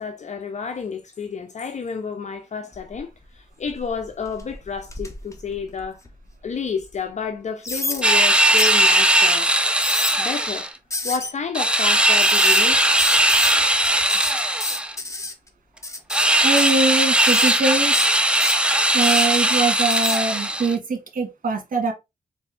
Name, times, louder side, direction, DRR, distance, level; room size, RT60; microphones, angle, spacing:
voice 1, 0.0-6.0 6.4-9.5 10.2-10.7 11.0-13.0, left 6 dB, 55° left, 0.7 m, -30 dB
sound 1, 2.7-3.2 3.7-6.3 6.8-6.9 7.6-8.0 8.6-8.8 9.6-10.2 10.9-11.3 12.2-12.7 13.0-13.6 13.8-15.3 15.8-16.3 16.6-16.9 17.2-17.5 17.9-18.6 19.0-19.6 19.9-20.2, left 2 dB, 20° left, 1.1 m, -29 dB
sound 2, 8.0-10.7 11.5-14.9 16.1-20.7, right 1 dB, 5° right, 0.6 m, -18 dB
voice 2, 16.4-17.9 18.9-21.9, right 3 dB, 65° right, 1.6 m, -23 dB
4.1 x 3.4 x 3.4 m
cardioid pair, 65°, 15 cm